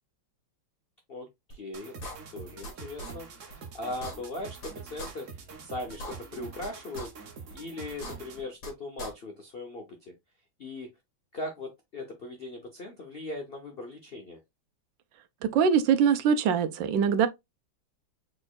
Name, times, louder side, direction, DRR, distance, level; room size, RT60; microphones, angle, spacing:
voice 1, 1.1-1.9 2.3-7.1 7.5-10.1 10.6-10.9 11.3-14.4, left 2 dB, 55° left, 0.6 m, -39 dB
sound 1, 1.5-1.6 2.0-2.7 3.0-3.1 3.5-3.6 3.9-4.7 5.0-5.1 5.5-5.6 5.9-6.7 7.0-7.1 7.5-7.6 7.9-8.7 9.0-9.1, equal, 75° left, 2.6 m, -40 dB
sound 2, 1.7-8.5, right 5 dB, 50° right, 1.1 m, -45 dB
voice 2, 15.5-17.3, right 7 dB, 75° right, 1.3 m, -23 dB
4.8 x 4.3 x 2.4 m
omnidirectional pair, 2.1 m